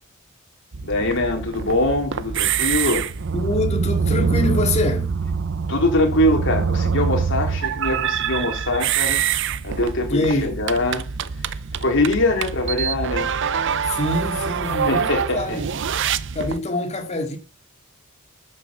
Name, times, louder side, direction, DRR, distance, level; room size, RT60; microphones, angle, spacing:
sound 1, 0.7-16.6, right 6 dB, 60° right, 0.6 m, -25 dB
voice 1, 0.8-3.0 5.7-9.2 9.6-11.0 11.8-13.3 14.9-15.6, left 1 dB, 60° left, 3.6 m, -22 dB
voice 2, 3.3-5.1 10.1-10.6 13.9-15.7 16.3-17.4, left 2 dB, 30° left, 2.2 m, -25 dB
12.5 x 6.6 x 6.9 m
head